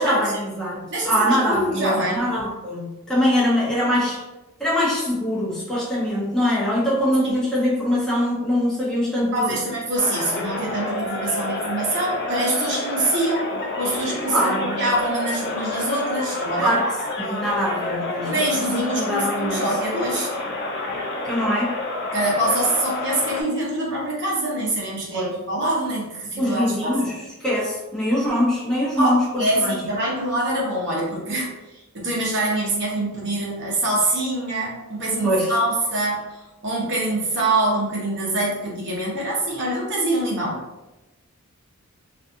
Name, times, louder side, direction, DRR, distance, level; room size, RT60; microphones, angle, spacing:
voice 1, 0.0-4.2 4.6-9.6 14.3-14.8 16.6-18.4 18.7-19.7 21.2-21.8 25.1-25.4 26.4-29.8 35.2-35.5, equal, 5° left, -8 dB, 0.9 m, -23 dB
voice 2, 0.9-2.2 7.2-7.4 9.3-16.7 18.2-20.3 22.1-27.0 29.0-31.5 31.9-40.6, right 1 dB, 55° right, -4 dB, 0.9 m, -24 dB
sound 1, 10.0-23.4, left 2 dB, 50° left, 0.4 m, -29 dB
2.6 x 2.4 x 2.6 m, 1.0 s
head